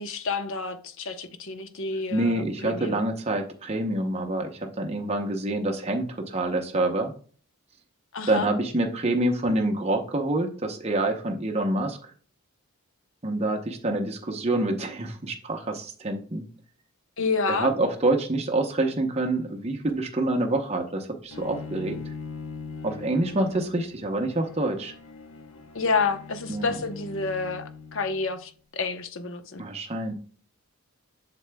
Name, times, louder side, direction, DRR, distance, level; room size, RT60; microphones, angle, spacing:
voice 1, 0.0-3.0 8.1-8.5 17.2-17.7 25.7-29.6, left 4 dB, 60° left, 0.8 m, -29 dB
voice 2, 2.1-7.1 8.3-12.0 13.2-16.5 17.5-22.0 22.8-24.9 26.5-26.8 29.6-30.1, right 2 dB, 30° right, 0.7 m, -27 dB
Bowed string instrument, 21.3-28.4, left 4 dB, 75° left, 1.2 m, -41 dB
7.9 x 6.7 x 2.2 m
head